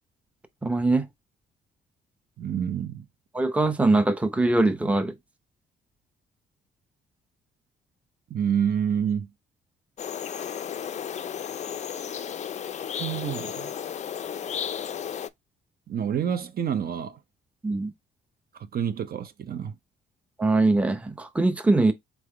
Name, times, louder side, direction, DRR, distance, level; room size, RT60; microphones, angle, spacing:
voice 1, 0.6-1.1 3.3-5.2 17.6-17.9 20.4-21.9, right 2 dB, 5° right, 0.6 m, -22 dB
voice 2, 2.4-3.1 8.3-9.3 13.0-13.7 15.9-17.2 18.5-19.7, right 8 dB, 50° right, 0.6 m, -28 dB
sound 1, 10.0-15.3, left 8 dB, 35° left, 0.4 m, -33 dB
4.0 x 3.4 x 3.2 m
cardioid pair, 90°, 20 cm